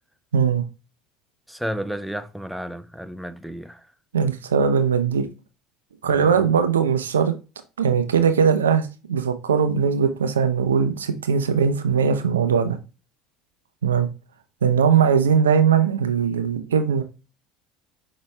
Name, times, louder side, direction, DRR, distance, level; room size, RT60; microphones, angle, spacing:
voice 1, 0.3-0.6 4.1-5.3 6.0-7.3 7.8-12.8 13.8-14.1 14.6-17.0, right 7 dB, 85° right, 0.5 m, -20 dB
voice 2, 1.5-3.9 6.0-6.4, equal, ahead, 0.5 m, -32 dB
5.5 x 3.0 x 3.3 m
hypercardioid pair, 70°, 0 cm